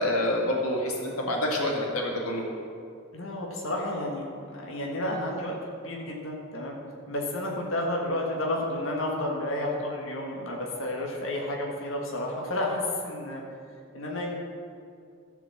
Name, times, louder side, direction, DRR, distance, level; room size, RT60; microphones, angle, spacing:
voice 1, 0.0-2.4, left 1 dB, 85° left, 0 dB, 1.9 m, -27 dB
voice 2, 3.1-6.8 7.1-13.4 13.9-14.4, left 1 dB, 65° left, -1 dB, 1.6 m, -31 dB
14.5 x 5.1 x 7.2 m, 2.4 s
head